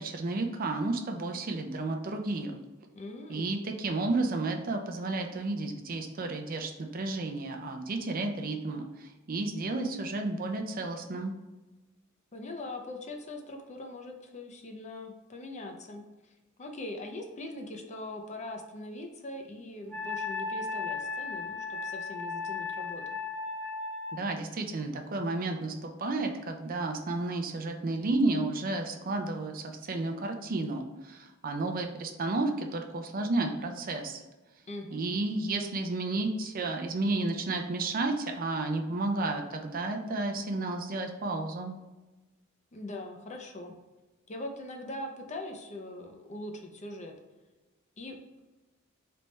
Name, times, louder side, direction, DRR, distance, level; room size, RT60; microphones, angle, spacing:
voice 1, 0.0-2.6 3.3-11.3 24.1-34.2 34.9-41.8, right 2 dB, 45° right, 4 dB, 0.5 m, -32 dB
voice 2, 2.9-3.5 12.3-16.0 16.6-23.2 34.7-35.0 42.7-43.7 44.3-47.1 48.0-48.4, left 2 dB, 35° left, 3 dB, 0.6 m, -41 dB
Wind instrument woodwind instrument, 19.9-24.2, left 4 dB, 5° left, 0.7 m, -35 dB
4.0 x 3.4 x 3.2 m, 1.1 s
head